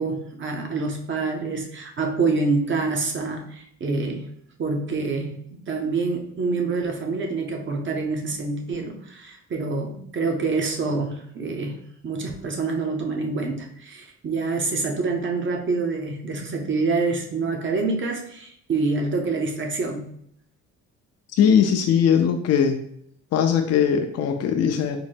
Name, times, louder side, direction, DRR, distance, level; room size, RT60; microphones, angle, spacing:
voice 1, 0.0-4.3 4.6-20.1, right 3 dB, 40° right, 2 dB, 0.7 m, -26 dB
voice 2, 21.4-22.8 23.3-25.0, left 8 dB, 55° left, 5 dB, 0.5 m, -20 dB
3.8 x 2.1 x 3.4 m, 0.70 s
cardioid pair, 90°, 30 cm